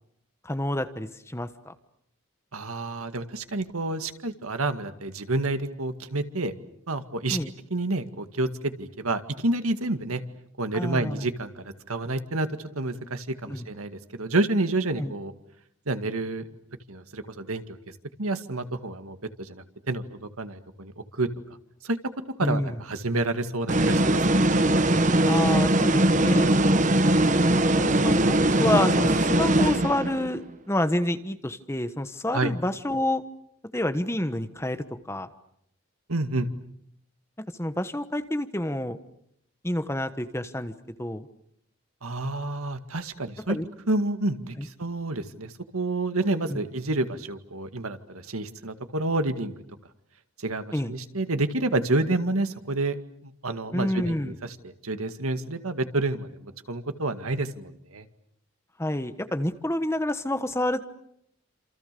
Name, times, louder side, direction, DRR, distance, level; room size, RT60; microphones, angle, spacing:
voice 1, 0.4-1.7 7.3-7.5 10.7-11.3 13.5-13.7 15.0-15.1 22.4-22.8 25.3-26.5 27.1-27.5 27.8-33.2 33.7-35.3 37.6-39.0 39.6-40.7 41.0-41.3 43.5-43.7 44.6-44.7 46.5-46.6 50.7-50.9 53.7-54.3 58.8-60.8, left 1 dB, 10° left, 9 dB, 1.3 m, -28 dB
voice 2, 2.5-6.5 6.9-7.4 7.7-10.2 10.6-12.5 12.8-15.3 15.9-16.5 16.9-17.8 18.2-21.3 21.8-22.0 22.4-24.2 32.3-32.5 36.1-36.5 42.0-43.6 43.9-49.5 50.4-58.0, right 2 dB, 90° right, 9 dB, 2.0 m, -29 dB
sound 1, 23.7-30.3, right 1 dB, 35° right, 1.1 m, -21 dB
29.0 x 27.5 x 6.9 m, 0.73 s
head